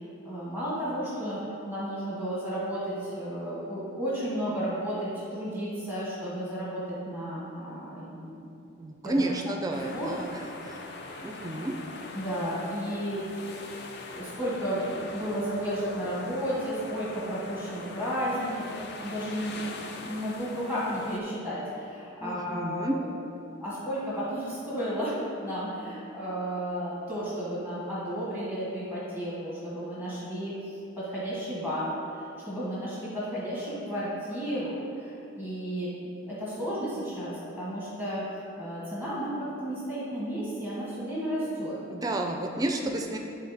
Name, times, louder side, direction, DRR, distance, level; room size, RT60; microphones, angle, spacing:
voice 1, 0.0-1.4 1.7-8.4 9.0-9.3 9.7-10.1 12.1-13.7 14.1-23.0 23.4-38.2 38.6-41.8, equal, 15° left, -9 dB, 1.1 m, -33 dB
voice 2, 8.8-10.8 11.2-11.8 22.2-23.0 41.9-43.2, right 1 dB, 15° right, 3 dB, 0.4 m, -31 dB
sound 1, 9.7-21.2, left 3 dB, 50° left, 0.5 m, -42 dB
10.5 x 3.7 x 4.0 m, 2.7 s
head